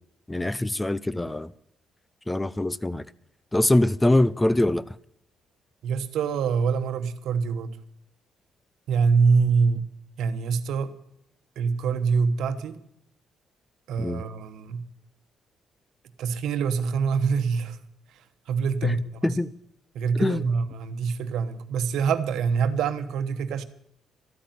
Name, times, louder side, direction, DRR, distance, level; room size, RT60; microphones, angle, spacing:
voice 1, 0.3-1.5 2.3-3.1 3.5-5.0 14.0-14.2 18.8-19.0 19.2-19.5 20.2-20.4, left 1 dB, 10° left, 0.5 m, -23 dB
voice 2, 5.8-7.8 8.9-9.9 10.2-10.9 11.6-12.8 13.9-14.9 16.2-17.8 18.5-19.4 19.9-23.6, right 5 dB, 80° right, 1.1 m, -25 dB
13.5 x 9.0 x 9.3 m
cardioid pair, 90°, 0 cm